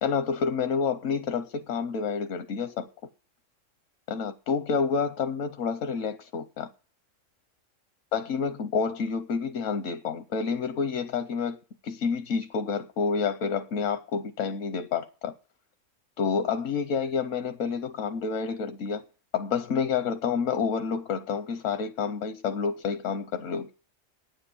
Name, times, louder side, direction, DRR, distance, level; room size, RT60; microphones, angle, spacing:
voice 1, 0.0-2.9 4.1-6.7 8.1-11.6 11.8-15.3 16.2-19.0 19.3-23.7, left 5 dB, 80° left, 1.2 m, -29 dB
9.6 x 8.0 x 8.4 m
omnidirectional pair, 1.3 m